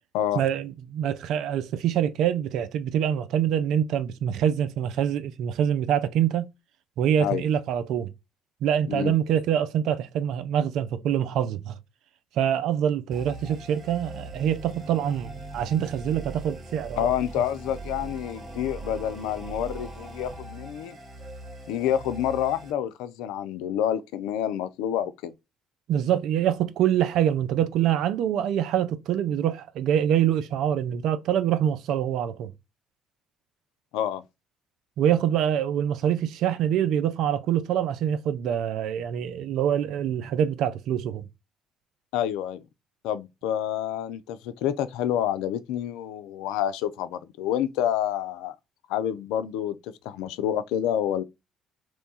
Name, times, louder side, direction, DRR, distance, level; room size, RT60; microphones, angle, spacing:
voice 1, 0.4-6.5 7.0-8.1 8.6-11.8 12.4-17.1 25.9-32.5 35.0-41.3, right 9 dB, 70° right, 0.4 m, -25 dB
sound 1, 13.1-22.7, right 2 dB, 40° right, 1.7 m, -40 dB
voice 2, 17.0-21.0 21.7-25.3 33.9-34.2 42.1-42.6 43.0-48.5 48.9-51.2, left 10 dB, 75° left, 0.3 m, -28 dB
3.0 x 2.2 x 4.1 m
hypercardioid pair, 55°, 0 cm